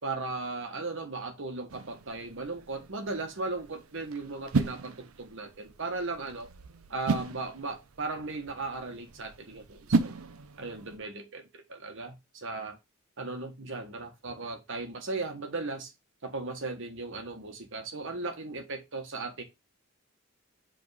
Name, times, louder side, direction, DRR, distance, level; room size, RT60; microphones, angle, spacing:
voice 1, 0.0-6.5 6.9-10.1 10.6-12.8 13.2-15.9 16.2-19.4, right 3 dB, 65° right, 1.4 m, -37 dB
sound 1, 1.7-11.0, right 3 dB, 80° right, 0.6 m, -35 dB
5.2 x 3.7 x 4.9 m
head